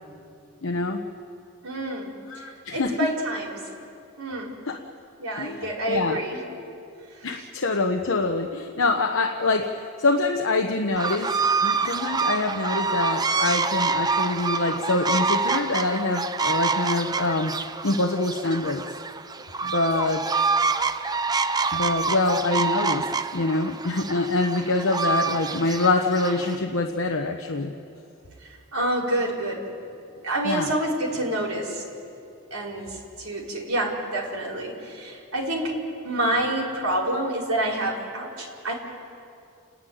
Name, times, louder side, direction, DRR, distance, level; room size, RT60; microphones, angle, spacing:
voice 1, 0.6-1.0 2.3-3.1 4.7-4.8 5.4-6.2 7.2-18.8 19.6-20.5 21.7-27.7 30.4-30.7, left 2 dB, 65° left, 3 dB, 1.0 m, -25 dB
voice 2, 1.6-2.1 2.7-3.6 4.2-4.6 5.2-6.4 28.7-29.7 30.2-31.8 32.5-32.9 33.2-35.8 36.0-38.7, right 1 dB, 75° right, -3 dB, 4.5 m, -27 dB
sound 1, 11.0-26.6, right 4 dB, 20° right, 0.5 m, -26 dB
29.5 x 10.5 x 9.3 m, 2.5 s
head